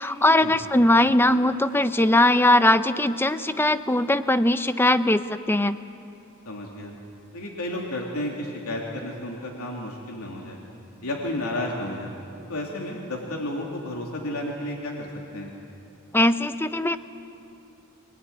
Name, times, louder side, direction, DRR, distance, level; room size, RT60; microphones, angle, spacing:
voice 1, 0.0-5.8 16.1-17.0, left 1 dB, 10° left, 11 dB, 0.7 m, -20 dB
voice 2, 6.4-6.9 7.3-10.6 11.0-12.1 12.5-15.5, left 1 dB, 85° left, -1 dB, 3.2 m, -32 dB
24.0 x 18.5 x 9.8 m, 2.6 s
head